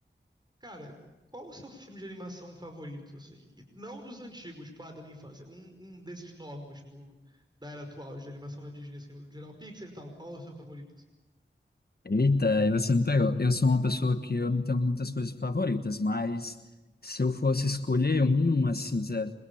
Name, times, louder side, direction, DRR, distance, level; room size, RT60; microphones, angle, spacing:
voice 1, 0.6-0.9 1.3-11.0, equal, 20° right, 4 dB, 5.3 m, -44 dB
voice 2, 12.0-16.6 17.0-19.3, left 3 dB, 55° left, 8 dB, 1.3 m, -26 dB
27.0 x 25.0 x 8.7 m, 1.1 s
wide cardioid pair, 60°, 19 cm